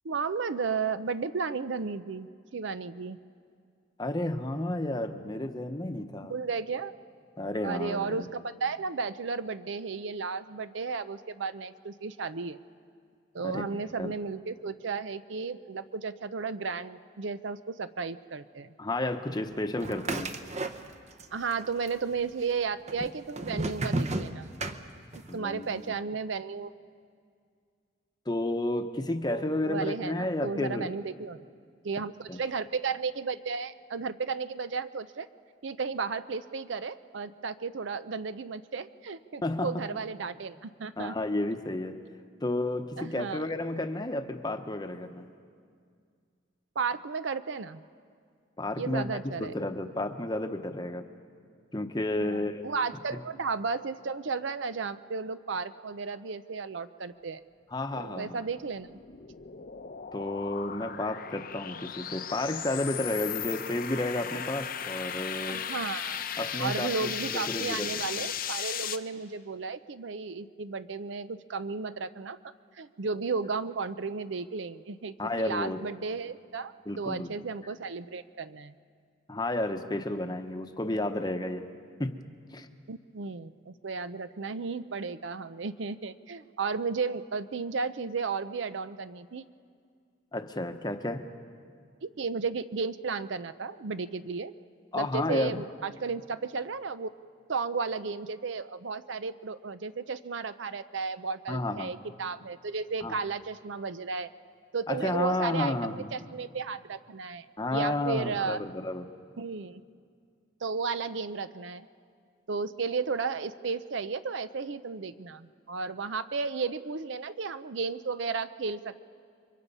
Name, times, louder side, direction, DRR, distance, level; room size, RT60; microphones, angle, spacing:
voice 1, 0.0-3.2 6.3-6.9 7.6-12.6 13.3-18.7 21.3-24.5 25.1-26.7 29.3-31.4 31.8-35.3 35.6-41.1 43.0-43.5 46.8-47.8 48.8-49.5 52.2-57.4 57.9-59.0 65.5-66.2 66.6-72.4 72.8-78.7 82.9-89.4 92.0-94.5 95.0-97.1 97.5-104.3 104.7-107.5 107.7-108.6 109.4-109.8 110.6-111.9 112.5-119.0, right 4 dB, 65° right, 13 dB, 0.6 m, -34 dB
voice 2, 4.0-6.3 7.4-8.3 13.4-13.6 14.0-14.1 18.8-20.3 25.3-25.9 28.3-30.9 32.3-32.4 39.4-39.9 41.0-42.0 42.4-45.3 48.6-51.0 51.7-52.6 57.7-58.4 60.1-65.6 66.4-68.2 75.2-75.8 76.9-77.3 79.3-81.6 82.0-82.2 82.5-82.7 90.3-91.2 94.9-95.6 101.5-101.9 103.0-103.2 104.9-106.1 107.6-109.0, left 1 dB, 20° left, 7 dB, 0.9 m, -32 dB
sound 1, 19.8-21.2 21.5-22.2 22.9-25.3, right 2 dB, 35° right, 0.9 m, -33 dB
sound 2, 58.4-69.0, left 8 dB, 45° left, 0.7 m, -36 dB
29.5 x 23.5 x 5.5 m, 2.2 s
head